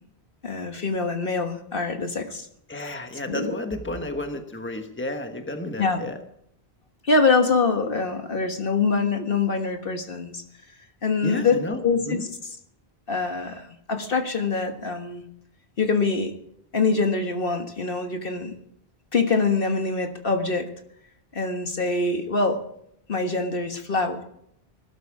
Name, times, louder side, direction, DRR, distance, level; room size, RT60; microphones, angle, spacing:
voice 1, 0.4-2.5 3.3-3.6 5.8-6.0 7.0-10.4 11.0-12.2 13.1-15.2 15.8-16.3 16.7-18.5 19.1-20.7 21.3-22.6 23.1-24.2, left 4 dB, 60° left, 5 dB, 1.7 m, -24 dB
voice 2, 2.7-6.2 11.2-11.8 12.1-12.2, left 1 dB, 10° left, 6 dB, 1.4 m, -32 dB
19.5 x 12.5 x 4.8 m, 0.73 s
omnidirectional pair, 1.0 m